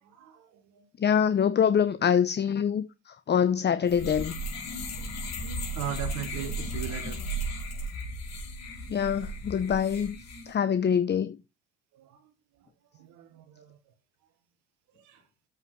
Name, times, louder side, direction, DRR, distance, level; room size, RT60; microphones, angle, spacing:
voice 1, 0.0-0.9 5.0-7.2 11.9-12.3 12.9-13.8 14.9-15.2, right 9 dB, 75° right, 1.4 m, -40 dB
voice 2, 1.0-4.3 8.9-10.2 10.5-11.4, left 8 dB, 35° left, 0.8 m, -25 dB
sound 1, 3.9-10.5, right 1 dB, 60° left, 4.6 m, -35 dB
7.8 x 5.6 x 4.8 m
supercardioid pair, 70°, 30 cm